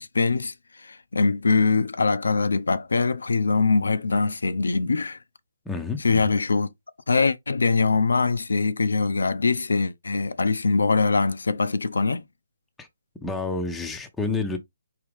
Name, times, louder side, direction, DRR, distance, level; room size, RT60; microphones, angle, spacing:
voice 1, 0.0-5.2 6.0-6.7 7.1-12.2, left 4 dB, 80° left, 0.6 m, -23 dB
voice 2, 5.7-6.3 12.8-12.9 13.2-14.6, left 3 dB, 5° left, 0.7 m, -29 dB
4.8 x 2.9 x 3.5 m
hypercardioid pair, 150°, 0 cm